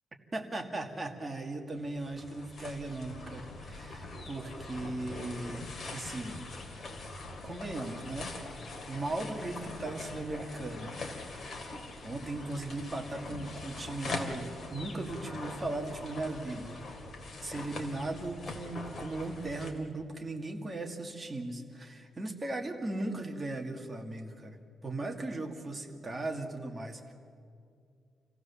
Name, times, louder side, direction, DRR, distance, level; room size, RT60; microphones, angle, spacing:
voice 1, 0.3-6.4 7.4-8.3 8.9-11.5 12.0-17.0 17.4-24.6 24.8-27.1, right 2 dB, 20° right, 3 dB, 2.0 m, -38 dB
sound 1, 1.7-19.7, left 3 dB, 40° left, 2.7 m, -42 dB
27.5 x 16.0 x 7.1 m, 2.4 s
wide cardioid pair, 145°, 0 cm